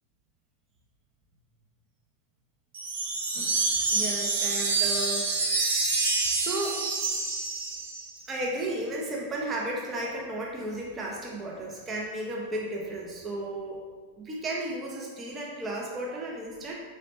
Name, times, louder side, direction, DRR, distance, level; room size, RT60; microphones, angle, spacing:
sound 1, 2.7-8.1, right 3 dB, 65° right, 1.2 m, -27 dB
voice 1, 3.9-5.5 6.3-6.8 8.3-13.8 14.2-16.7, right 1 dB, 20° right, -3 dB, 0.6 m, -34 dB
5.0 x 3.1 x 2.8 m, 1.5 s
figure-of-eight pair, 90°, 0 cm